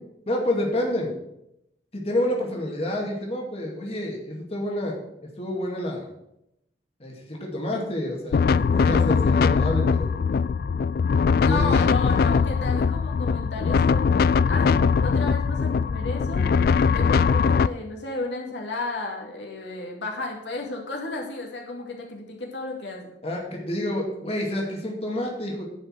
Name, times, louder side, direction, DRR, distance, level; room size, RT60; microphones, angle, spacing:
voice 1, 0.3-1.1 1.9-5.0 5.4-6.1 7.0-10.2 11.4-12.2 23.2-25.6, left 1 dB, 35° left, -1 dB, 2.2 m, -28 dB
sound 1, 8.3-17.7, left 5 dB, 55° left, 0.3 m, -21 dB
voice 2, 11.4-16.4 16.9-23.1, left 3 dB, 85° left, -1 dB, 2.4 m, -33 dB
10.5 x 5.4 x 7.4 m, 0.82 s
head